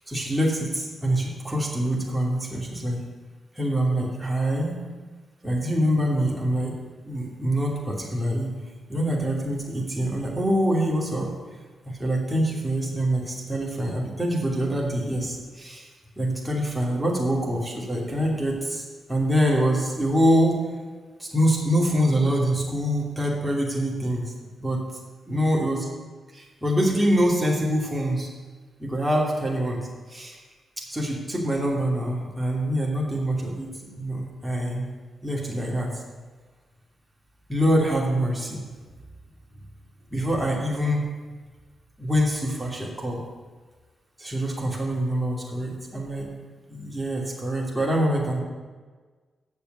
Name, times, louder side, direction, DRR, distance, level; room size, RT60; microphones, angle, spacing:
voice 1, 0.1-3.0 3.5-4.8 5.4-6.8 7.0-8.5 8.9-11.3 11.8-15.9 16.2-20.6 21.2-24.3 24.6-24.8 25.3-25.8 26.3-28.3 28.8-30.4 30.8-33.7 34.0-34.9 35.2-36.0 37.5-38.6 40.1-41.1 42.0-43.2 44.2-46.3 46.7-48.4, equal, 10° right, -3 dB, 2.8 m, -25 dB
7.3 x 7.0 x 7.9 m, 1.4 s
supercardioid pair, 50°, 0 cm